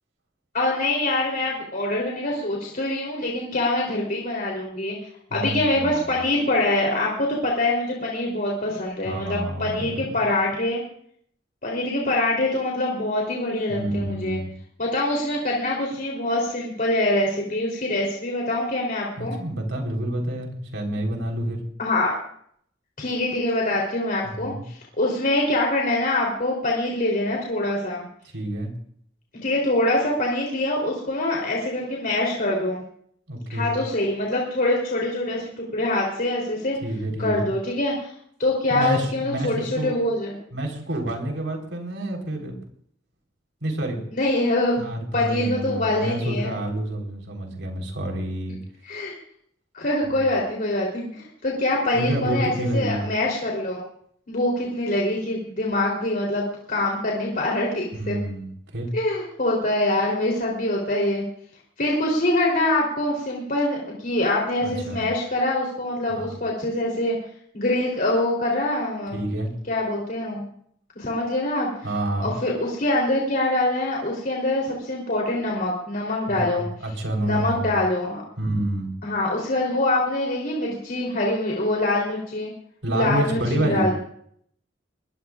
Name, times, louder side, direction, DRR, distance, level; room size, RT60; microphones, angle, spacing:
voice 1, 0.5-5.0 5.3-10.8 11.6-14.4 14.8-19.4 21.8-22.2 23.0-28.1 29.4-32.8 33.5-36.8 37.2-38.1 38.4-40.3 44.1-44.8 45.1-46.5 48.8-49.1 49.7-53.8 54.3-58.2 58.9-61.2 61.8-67.2 67.5-69.2 69.7-70.4 71.0-71.7 72.2-76.7 77.2-78.2 79.0-82.5 82.9-84.0, left 1 dB, 45° left, -2 dB, 3.5 m, -24 dB
voice 2, 5.3-6.1 9.0-10.2 13.7-14.5 19.2-21.6 24.3-24.6 28.3-28.7 33.3-33.7 36.8-37.5 38.7-40.0 40.5-42.5 43.6-44.0 44.8-48.6 51.9-53.1 57.9-58.9 64.6-65.0 66.1-66.4 69.1-69.5 71.8-72.3 76.3-77.7 78.4-78.9 82.8-83.9, right 1 dB, 80° right, 1 dB, 4.1 m, -28 dB
23.5 x 19.5 x 2.5 m, 0.65 s
head